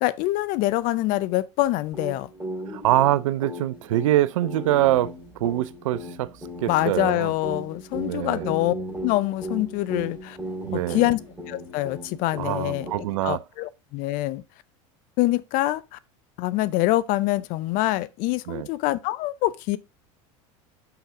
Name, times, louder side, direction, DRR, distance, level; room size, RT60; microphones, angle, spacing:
voice 1, 0.0-2.3 6.7-8.7 9.0-10.4 10.7-11.2 11.5-12.9 13.2-14.4 15.2-16.0 16.4-19.8, left 17 dB, 55° left, 0.6 m, -25 dB
sound 1, 1.9-13.3, equal, 10° right, 3.7 m, -37 dB
voice 2, 2.7-6.3 6.6-7.3 7.9-8.6 10.6-11.1 12.4-13.4 18.5-18.7, right 14 dB, 80° right, 0.4 m, -24 dB
5.8 x 5.6 x 3.5 m
hypercardioid pair, 90°, 16 cm